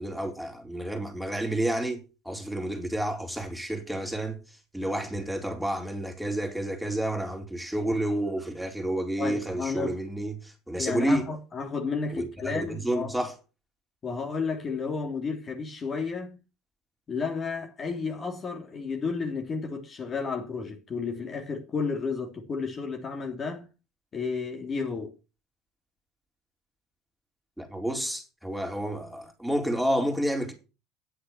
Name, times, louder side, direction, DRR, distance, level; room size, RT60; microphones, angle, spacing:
voice 1, 0.0-4.4 4.7-11.3 12.1-13.3 27.6-30.5, right 1 dB, ahead, 4.1 m, -30 dB
voice 2, 9.2-9.9 10.8-13.2 14.0-16.4 17.1-23.7 24.1-25.1, left 5 dB, 35° left, 3.0 m, -32 dB
10.0 x 7.7 x 7.0 m
hypercardioid pair, 70°, 0 cm